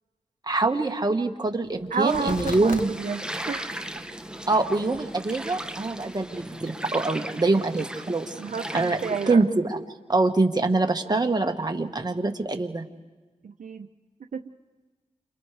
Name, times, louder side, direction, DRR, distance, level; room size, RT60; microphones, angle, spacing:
voice 1, 0.5-2.9 4.5-8.3 8.7-9.0 9.3-9.8 10.1-12.8, right 3 dB, 30° right, 3 dB, 1.5 m, -24 dB
sound 1, 1.6-2.9 3.3-7.0, left 3 dB, 80° left, 1.3 m, -43 dB
voice 2, 1.9-3.7 8.4-9.4 13.4-13.9 14.3-14.4, right 5 dB, 75° right, 6 dB, 0.7 m, -30 dB
sound 2, 2.1-9.4, right 1 dB, 5° right, 0.9 m, -37 dB
30.0 x 27.5 x 3.4 m, 1.3 s
wide cardioid pair, 70°, 13 cm